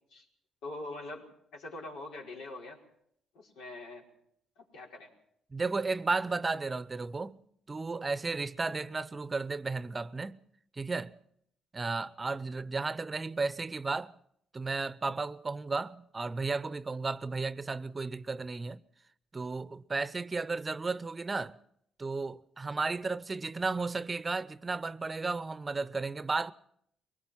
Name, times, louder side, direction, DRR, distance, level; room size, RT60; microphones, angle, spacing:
voice 1, 0.6-2.8 3.3-4.1 4.6-5.1, left 2 dB, 90° left, 5.0 m, -43 dB
voice 2, 5.5-7.4 7.7-10.4 10.7-11.2 11.7-14.1 14.5-18.8 19.3-21.6 22.0-26.5, right 3 dB, 25° right, 0.7 m, -34 dB
23.0 x 20.0 x 5.8 m
cardioid pair, 90°, 0 cm